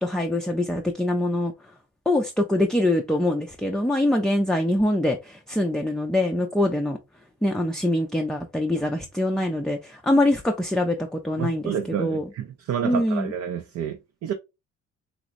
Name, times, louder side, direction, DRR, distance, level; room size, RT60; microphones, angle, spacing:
voice 1, 0.0-1.5 2.1-7.0 7.4-12.2 12.8-13.3, left 1 dB, ahead, 0.4 m, -24 dB
voice 2, 11.4-14.3, right 8 dB, 65° right, 0.5 m, -30 dB
3.2 x 2.9 x 2.5 m
cardioid pair, 90°, 30 cm